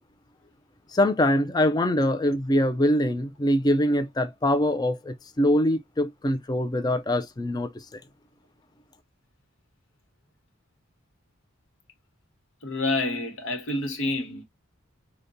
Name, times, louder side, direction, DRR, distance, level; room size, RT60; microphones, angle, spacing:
voice 1, 0.9-7.7, left 1 dB, 20° left, 0.4 m, -23 dB
voice 2, 12.6-14.4, left 2 dB, 75° left, 1.1 m, -28 dB
5.0 x 2.2 x 2.6 m
head